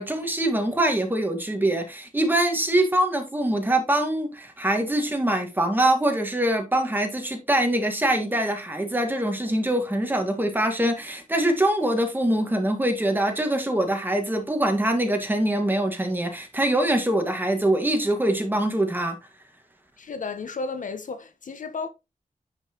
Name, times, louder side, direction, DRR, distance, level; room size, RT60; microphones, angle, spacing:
voice 1, 0.0-19.2, right 1 dB, 15° right, 1.8 m, -24 dB
voice 2, 20.0-21.9, left 4 dB, 70° left, 1.1 m, -33 dB
9.8 x 5.6 x 3.0 m
wide cardioid pair, 125°, 14 cm